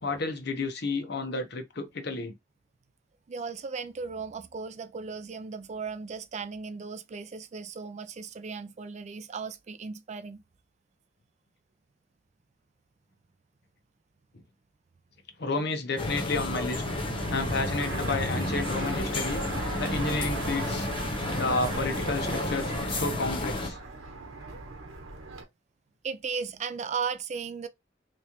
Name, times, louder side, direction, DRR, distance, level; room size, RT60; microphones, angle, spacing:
voice 1, 0.0-2.3 15.4-16.8 17.3-19.4 19.8-20.9 21.3-23.8, left 3 dB, 55° left, 0.8 m, -31 dB
voice 2, 3.3-10.4 26.0-27.7, right 5 dB, 35° right, 0.4 m, -36 dB
sound 1, 16.0-23.7, left 2 dB, 25° left, 0.7 m, -32 dB
Fixed-wing aircraft airplane, 16.7-25.4, right 3 dB, 80° right, 0.9 m, -37 dB
3.5 x 3.1 x 2.9 m
head